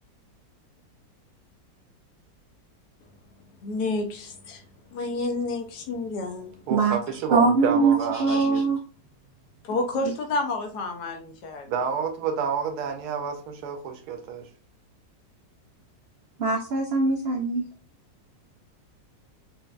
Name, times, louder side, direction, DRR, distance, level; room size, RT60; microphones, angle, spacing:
voice 1, 3.6-4.6 4.9-6.6 9.6-11.7, left 2 dB, 70° left, 1.3 m, -30 dB
voice 2, 6.7-8.6 11.7-14.4, right 6 dB, 70° right, 1.2 m, -29 dB
voice 3, 7.3-8.8 10.0-10.1 16.4-17.7, right 4 dB, 85° right, 0.5 m, -22 dB
4.5 x 2.6 x 2.4 m
omnidirectional pair, 1.9 m